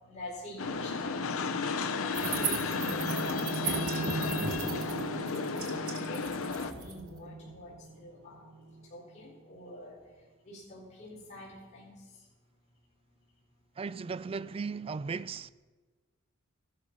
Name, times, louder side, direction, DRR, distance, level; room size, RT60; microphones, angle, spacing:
voice 1, 0.0-1.1 1.9-5.3 6.1-8.4 8.9-10.0 10.5-11.9, left 1 dB, 30° left, 4.4 m, -45 dB
sound 1, 0.6-6.7, left 4 dB, 65° left, 0.8 m, -33 dB
sound 2, 2.1-8.7, right 3 dB, 80° right, 1.9 m, -36 dB
voice 2, 13.8-15.5, right 5 dB, 25° right, 0.3 m, -36 dB
14.5 x 12.0 x 5.5 m
head